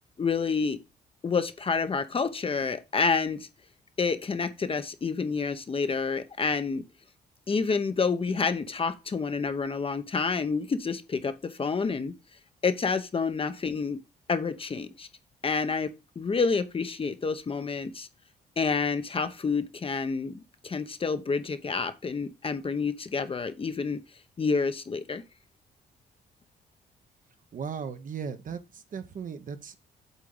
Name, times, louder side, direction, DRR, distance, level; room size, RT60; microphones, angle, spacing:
voice 1, 0.2-0.8 1.2-3.5 4.0-6.8 7.5-12.1 12.6-14.0 14.3-15.1 15.4-15.9 16.2-18.1 18.6-24.0 24.4-25.2, left 5 dB, 35° left, 0.9 m, -28 dB
voice 2, 27.5-29.7, right 6 dB, 55° right, 1.0 m, -37 dB
8.1 x 3.7 x 5.3 m
cardioid pair, 90°, 17 cm